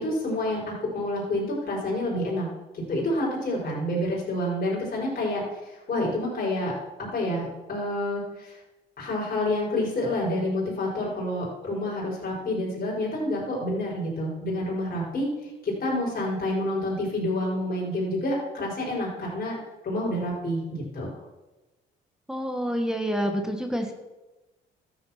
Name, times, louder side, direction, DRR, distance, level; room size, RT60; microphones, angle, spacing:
voice 1, 0.0-2.5 2.7-8.6 9.0-19.6 19.8-21.1, left 1 dB, 50° left, -4 dB, 5.2 m, -28 dB
voice 2, 22.3-23.9, equal, 5° right, 3 dB, 1.6 m, -28 dB
13.0 x 9.1 x 5.9 m, 1.1 s
cardioid pair, 90°, 20 cm